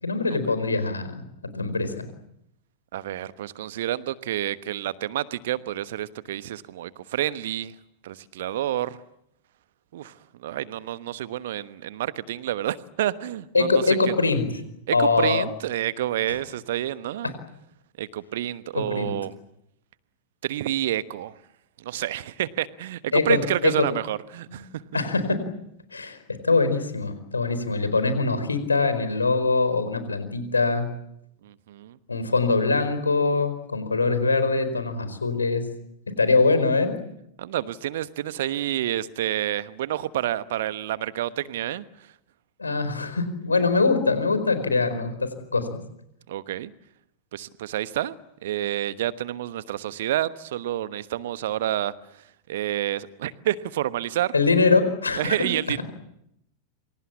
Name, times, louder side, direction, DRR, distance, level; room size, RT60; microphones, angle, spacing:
voice 1, 0.0-2.1 13.5-14.5 14.9-15.4 18.7-19.1 23.1-23.9 24.5-24.6 24.9-25.4 25.9-26.2 26.4-30.9 32.1-35.6 36.2-36.9 42.6-45.7 54.3-55.3, left 3 dB, 80° left, 11 dB, 4.7 m, -23 dB
voice 2, 2.9-7.7 8.0-9.0 9.9-14.1 14.9-17.3 18.0-19.3 20.4-21.4 21.8-24.7 31.4-32.0 37.4-42.1 46.3-46.7 47.3-48.1 48.4-54.3 55.1-55.8, right 13 dB, 55° right, 15 dB, 1.2 m, -29 dB
28.0 x 25.5 x 7.3 m, 0.80 s
figure-of-eight pair, 90°, 0 cm